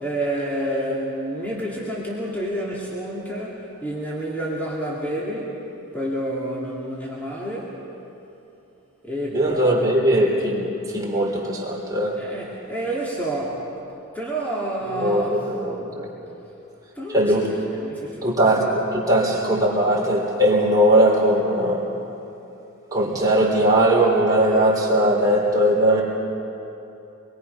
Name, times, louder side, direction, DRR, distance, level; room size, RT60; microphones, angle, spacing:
voice 1, 0.0-5.6 5.9-7.8 9.0-9.9 12.2-13.7 14.1-15.3 16.9-17.3 17.8-18.3, right 1 dB, 10° left, -6 dB, 2.4 m, -29 dB
voice 2, 9.3-12.2 14.9-16.1 17.1-17.6 18.2-21.9 22.9-26.0, right 1 dB, 15° right, -3 dB, 3.6 m, -19 dB
25.5 x 22.0 x 5.6 m, 2.9 s
head